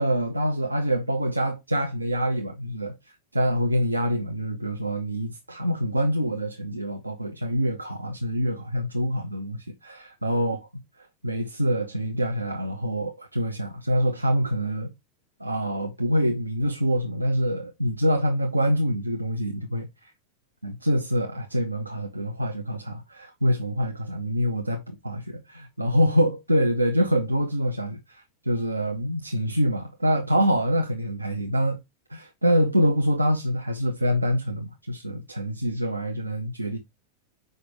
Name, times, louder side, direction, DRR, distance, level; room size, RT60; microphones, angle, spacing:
voice 1, 0.0-3.0 3.3-10.7 11.2-14.9 15.4-19.9 20.6-31.8 32.1-36.8, equal, 85° right, 0.8 m, -25 dB
6.6 x 5.3 x 3.2 m
figure-of-eight pair, 90°, 0 cm